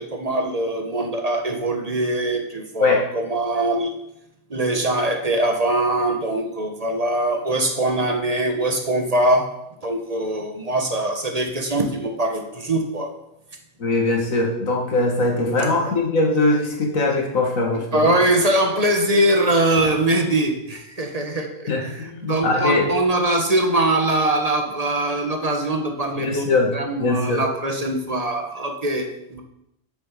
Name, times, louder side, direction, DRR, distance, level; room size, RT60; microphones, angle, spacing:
voice 1, 0.0-3.9 4.5-9.5 9.8-13.1 15.6-15.9 17.7-29.4, right 1 dB, 30° right, 4 dB, 1.3 m, -22 dB
voice 2, 13.8-18.1 21.7-22.9 26.2-26.7 27.0-27.4, left 2 dB, 80° left, 1 dB, 2.3 m, -21 dB
8.1 x 7.0 x 6.7 m, 0.83 s
omnidirectional pair, 1.4 m